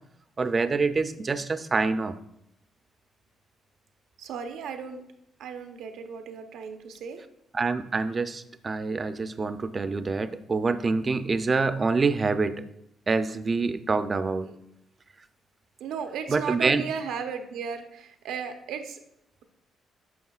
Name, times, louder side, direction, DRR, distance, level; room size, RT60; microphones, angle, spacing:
voice 1, 0.4-2.1 7.5-12.6 13.1-14.5 16.3-16.8, right 4 dB, 35° right, 11 dB, 0.5 m, -26 dB
voice 2, 4.2-5.0 5.4-7.2 14.5-14.6 15.8-19.0, right 6 dB, 85° right, 6 dB, 0.7 m, -35 dB
9.3 x 6.0 x 2.4 m, 0.78 s
cardioid pair, 90°, 0 cm